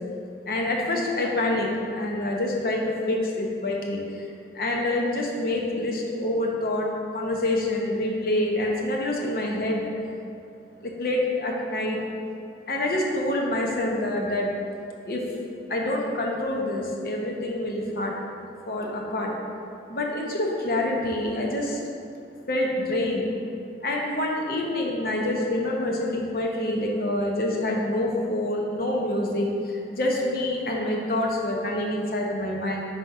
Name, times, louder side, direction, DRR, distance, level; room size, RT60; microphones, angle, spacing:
voice 1, 0.5-4.3 4.5-6.9 7.1-9.9 10.8-12.0 12.7-14.5 15.0-15.2 15.7-18.1 18.7-19.3 19.9-21.8 22.5-23.3 23.8-32.8, left 1 dB, 55° left, -1 dB, 0.8 m, -26 dB
5.7 x 4.0 x 4.6 m, 2.6 s
head